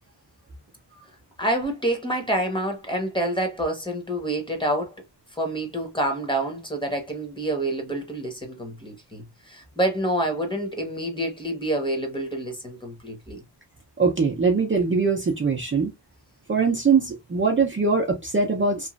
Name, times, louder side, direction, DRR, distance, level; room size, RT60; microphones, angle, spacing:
voice 1, 1.4-4.9 5.3-13.4, right 1 dB, 10° left, 0.9 m, -27 dB
voice 2, 14.0-15.9 16.5-18.9, right 4 dB, 30° right, 0.5 m, -22 dB
3.0 x 2.4 x 2.4 m
wide cardioid pair, 105°, 43 cm